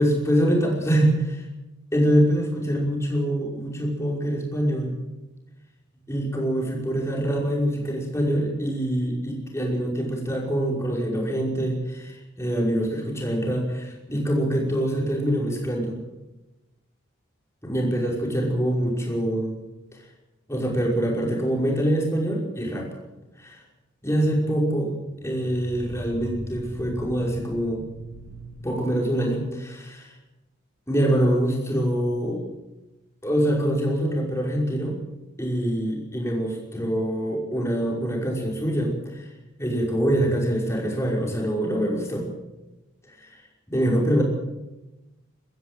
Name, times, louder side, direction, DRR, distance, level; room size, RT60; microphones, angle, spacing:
voice 1, 0.0-1.5 1.9-4.9 6.1-16.0 17.6-19.6 20.5-22.9 23.4-23.6 24.0-24.9 25.2-27.9 28.6-30.1 30.9-32.4 33.2-35.0 35.4-39.3 39.6-42.3 43.2-43.4 43.7-44.2, right 1 dB, 15° left, -2 dB, 5.5 m, -24 dB
sound 1, 19.7-19.8 25.1-29.6, left 1 dB, 90° right, 3.0 m, -40 dB
22.5 x 14.5 x 9.0 m, 1.0 s
head